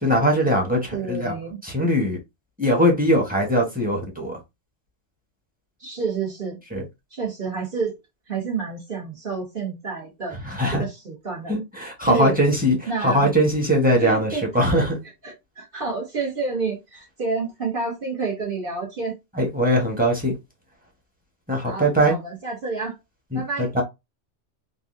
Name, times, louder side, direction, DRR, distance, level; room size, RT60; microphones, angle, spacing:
voice 1, 0.0-1.3 1.7-2.2 2.6-4.4 6.7-6.8 10.6-10.8 11.5-12.8 13.0-14.3 14.5-15.0 19.4-20.4 21.5-22.2 23.3-23.4 23.7-23.8, equal, 10° right, 1.1 m, -20 dB
voice 2, 0.9-1.6 5.8-6.6 7.1-8.0 8.3-10.4 10.7-11.5 12.1-12.4 12.9-13.3 14.0-14.5 15.0-19.2 21.6-22.9 23.3-23.7, right 4 dB, 45° right, 1.5 m, -29 dB
3.9 x 2.6 x 2.6 m
omnidirectional pair, 1.2 m